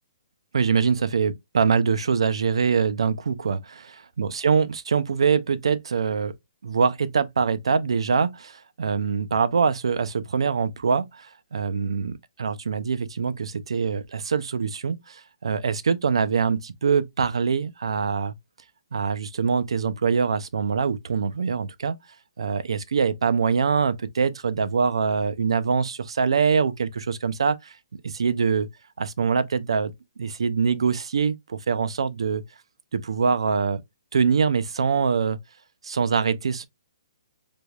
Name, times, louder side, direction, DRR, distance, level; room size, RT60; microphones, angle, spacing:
voice 1, 0.5-6.3 6.6-18.3 18.9-22.0 22.4-28.7 29.0-29.9 30.2-32.4 32.9-33.8 34.1-35.4 35.8-36.7, right 5 dB, 85° right, 0.5 m, -24 dB
3.4 x 3.0 x 2.2 m
hypercardioid pair, 170°, 3 cm